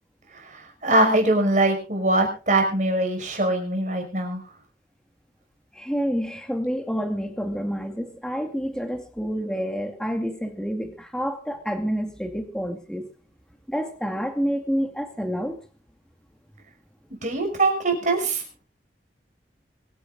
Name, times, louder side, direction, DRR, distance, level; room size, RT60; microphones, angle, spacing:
voice 1, 0.3-4.4 17.2-18.4, right 2 dB, 45° right, 3 dB, 5.6 m, -22 dB
voice 2, 5.7-13.1 13.7-15.6, equal, 5° left, 5 dB, 2.3 m, -28 dB
24.0 x 10.0 x 3.9 m, 0.35 s
head